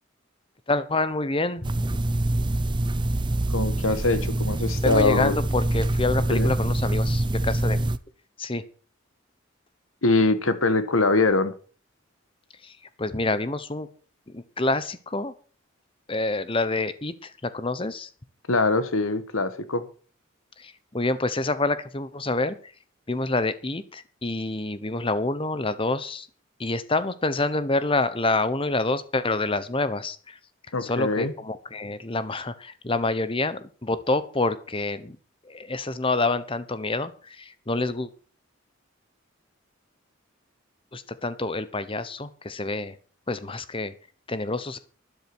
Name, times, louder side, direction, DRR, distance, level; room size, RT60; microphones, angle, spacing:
voice 1, 0.7-1.7 4.8-7.9 8.4-8.6 12.6-13.9 14.3-15.3 16.1-18.1 20.6-22.7 23.1-26.3 26.6-30.4 30.8-35.2 35.4-38.1 40.9-43.0 43.3-43.9 44.3-44.8, left 2 dB, 25° left, 14 dB, 1.0 m, -27 dB
sound 1, 1.6-8.0, right 1 dB, 20° right, 0.5 m, -25 dB
voice 2, 3.5-5.4 6.3-6.5 10.0-11.5 18.5-19.9 30.7-31.3, left 3 dB, 75° left, 12 dB, 1.5 m, -23 dB
12.0 x 10.5 x 6.1 m, 0.40 s
head